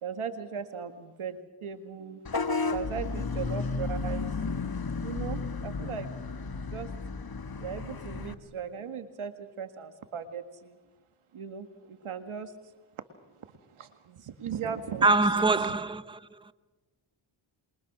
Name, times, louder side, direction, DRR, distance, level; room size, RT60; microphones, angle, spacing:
voice 1, 0.0-2.2 2.7-4.3 5.0-6.9 7.6-10.8 11.3-12.5 13.4-15.8, right 7 dB, 85° right, 2.0 m, -38 dB
Vehicle horn car horn honking / Bus, 2.2-8.3, left 4 dB, 45° left, 1.7 m, -33 dB
voice 2, 15.0-16.5, right 3 dB, 10° right, 0.9 m, -25 dB
27.5 x 23.0 x 6.2 m
cardioid pair, 60°, 49 cm